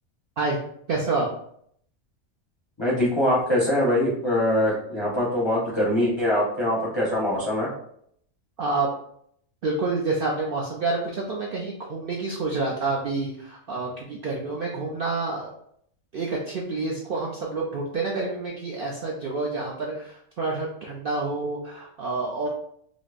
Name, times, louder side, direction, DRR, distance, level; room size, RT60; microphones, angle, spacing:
voice 1, 0.9-1.3 8.6-8.9 9.6-15.5 16.1-22.5, right 3 dB, 60° right, -3 dB, 0.6 m, -28 dB
voice 2, 2.8-7.7, left 1 dB, 30° left, -5 dB, 0.5 m, -23 dB
5.0 x 2.0 x 2.4 m, 0.68 s
omnidirectional pair, 1.4 m